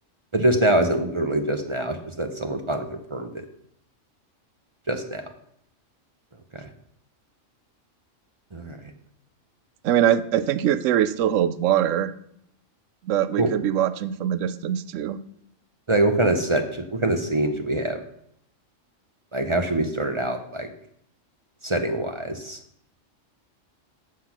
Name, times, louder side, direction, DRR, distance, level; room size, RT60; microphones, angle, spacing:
voice 1, 0.3-3.4 4.9-5.2 6.5-6.6 8.5-8.8 13.4-13.5 15.9-16.6 16.9-18.0 19.3-20.7 21.6-22.6, right 1 dB, 30° right, 6 dB, 0.7 m, -24 dB
voice 2, 9.8-12.1 13.0-15.2, right 10 dB, 80° right, 13 dB, 0.9 m, -22 dB
7.4 x 5.9 x 5.9 m, 0.72 s
omnidirectional pair, 1.3 m